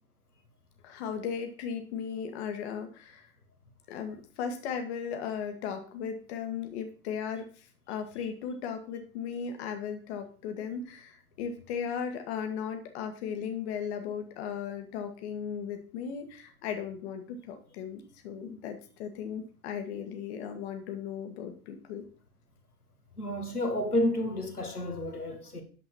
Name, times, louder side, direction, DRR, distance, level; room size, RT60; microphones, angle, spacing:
voice 1, 0.8-3.3 3.9-22.1, left 7 dB, 45° left, 1.7 m, -36 dB
voice 2, 23.2-25.6, left 1 dB, 90° left, 2.0 m, -30 dB
9.2 x 7.5 x 4.4 m
figure-of-eight pair, 95°, 44 cm